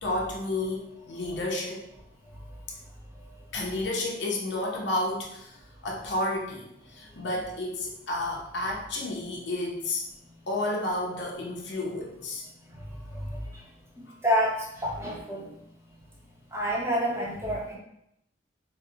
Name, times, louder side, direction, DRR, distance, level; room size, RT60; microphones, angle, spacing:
voice 1, 0.0-1.9 3.5-5.6 5.8-10.0 10.5-12.4, left 1 dB, 70° left, -2 dB, 0.7 m, -31 dB
voice 2, 14.2-15.5 16.5-17.8, equal, 15° right, -4 dB, 0.7 m, -28 dB
3.9 x 2.1 x 2.7 m, 0.78 s
head